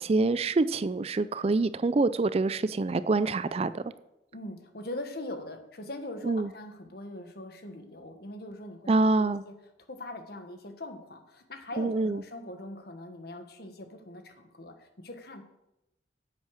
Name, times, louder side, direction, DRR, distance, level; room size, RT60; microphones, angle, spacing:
voice 1, 0.0-3.8 6.3-6.5 8.9-9.4 11.8-12.2, right 3 dB, 35° right, 15 dB, 0.4 m, -26 dB
voice 2, 4.3-9.5 9.9-15.4, left 1 dB, 55° left, 6 dB, 1.4 m, -42 dB
9.7 x 8.2 x 6.4 m, 0.88 s
head